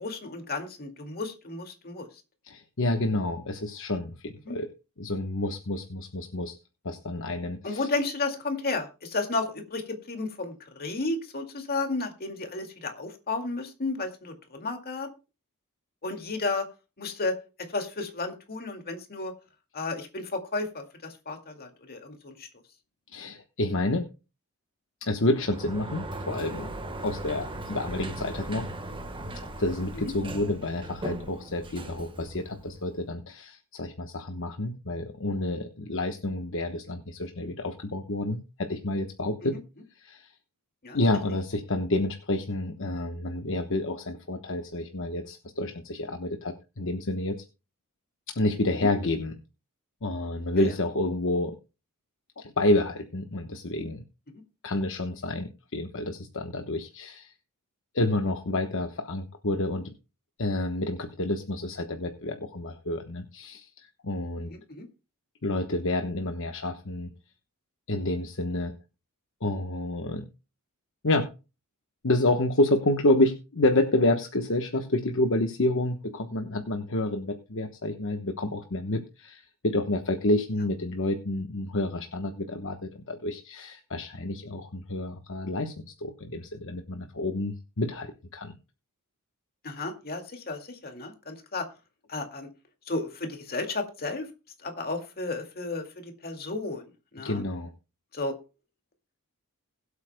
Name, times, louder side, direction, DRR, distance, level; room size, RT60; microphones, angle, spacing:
voice 1, 0.0-2.1 4.5-4.6 7.6-15.1 16.0-16.7 17.0-17.3 17.7-19.3 19.7-22.5 30.0-30.1 39.4-39.6 40.8-41.0 48.7-48.9 50.6-50.7 64.5-64.9 89.6-91.7 92.1-92.5 92.9-94.3 94.6-97.4 98.1-98.3, left 3 dB, 45° left, 4 dB, 2.1 m, -33 dB
voice 2, 2.4-4.7 5.0-6.5 6.8-7.9 23.1-24.1 25.0-26.7 27.0-28.7 29.6-39.6 40.0-40.3 40.9-47.4 48.3-49.3 50.0-51.6 52.4-54.0 54.6-57.3 57.9-59.9 60.4-64.5 65.4-67.1 67.9-68.7 69.4-70.3 71.0-71.3 72.0-88.6 97.2-97.7, left 2 dB, 60° left, 5 dB, 1.1 m, -29 dB
Sliding door, 25.3-33.0, right 1 dB, 25° right, 1.3 m, -38 dB
21.5 x 8.2 x 2.2 m, 0.30 s
head